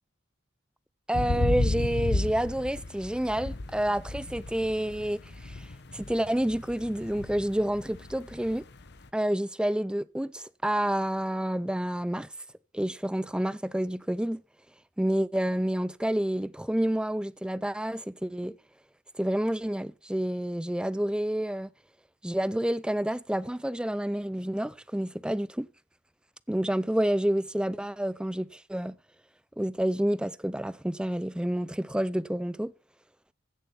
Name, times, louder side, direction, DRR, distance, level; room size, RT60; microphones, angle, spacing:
sound 1, 1.1-9.0, left 2 dB, 60° left, 1.0 m, -33 dB
voice 1, 1.1-5.7 5.9-8.6 9.1-12.3 12.7-14.4 15.0-18.5 19.2-21.7 22.2-25.7 26.5-29.0 29.6-32.7, right 1 dB, 5° right, 0.5 m, -29 dB
15.5 x 7.1 x 4.4 m
head